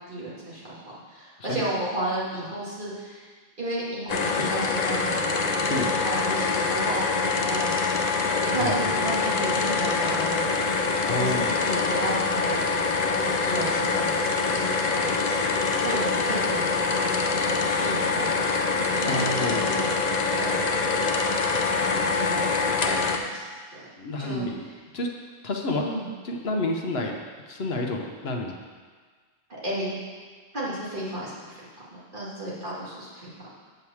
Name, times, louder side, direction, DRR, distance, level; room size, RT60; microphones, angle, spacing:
voice 1, 0.1-3.3 3.6-5.3 5.6-7.8 8.4-10.5 11.0-12.7 13.1-15.4 15.8-16.6 17.3-18.4 18.9-19.9 20.3-20.5 20.8-21.2 21.9-23.5 23.7-23.9 24.2-24.5 25.8-26.1 29.6-30.0 30.5-31.6 31.9-33.5, right 1 dB, 50° right, -8 dB, 2.4 m, -33 dB
sound 1, 4.1-23.2, left 4 dB, 45° left, 0.6 m, -25 dB
voice 2, 8.6-8.9 11.1-11.5 19.1-19.8 24.0-24.6 24.9-25.1 25.4-25.8 26.2-27.1 27.5-28.5, left 2 dB, 65° left, 2 dB, 1.1 m, -29 dB
8.1 x 4.7 x 7.1 m, 1.5 s
omnidirectional pair, 1.1 m